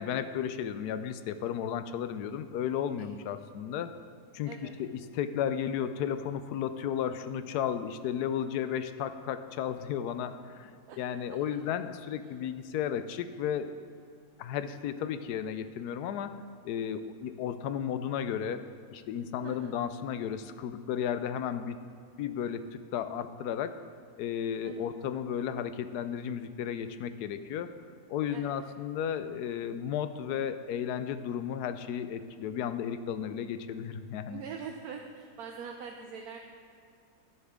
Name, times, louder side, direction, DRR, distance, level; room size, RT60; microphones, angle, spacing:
voice 1, 0.0-3.9 4.3-13.9 14.4-21.7 22.2-23.8 24.2-27.7 28.1-34.4, left 9 dB, 85° left, 11 dB, 1.1 m, -34 dB
voice 2, 19.4-19.7 24.6-24.9 28.3-28.6 34.3-36.4, right 6 dB, 75° right, 2 dB, 1.2 m, -43 dB
11.0 x 10.5 x 3.6 m, 2.3 s
omnidirectional pair, 1.7 m